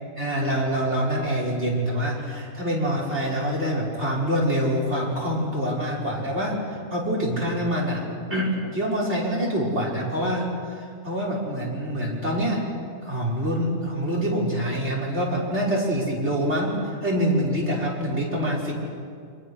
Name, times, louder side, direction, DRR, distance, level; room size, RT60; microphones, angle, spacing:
voice 1, 0.2-6.6 6.9-8.0 8.3-12.6 13.0-18.7, equal, 45° right, -3 dB, 5.9 m, -25 dB
29.5 x 25.5 x 6.5 m, 2.3 s
omnidirectional pair, 1.6 m